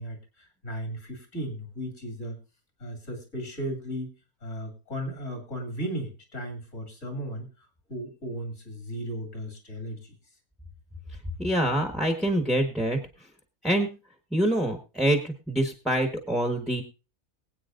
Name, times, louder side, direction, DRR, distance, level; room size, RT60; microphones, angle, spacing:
voice 1, 0.0-2.4 2.8-4.1 4.4-7.5 7.9-10.1, equal, 55° left, 3 dB, 3.3 m, -35 dB
voice 2, 11.4-13.0 13.6-13.9 14.3-16.8, right 1 dB, ahead, 4 dB, 1.2 m, -25 dB
23.5 x 8.5 x 2.6 m, 0.31 s
omnidirectional pair, 1.5 m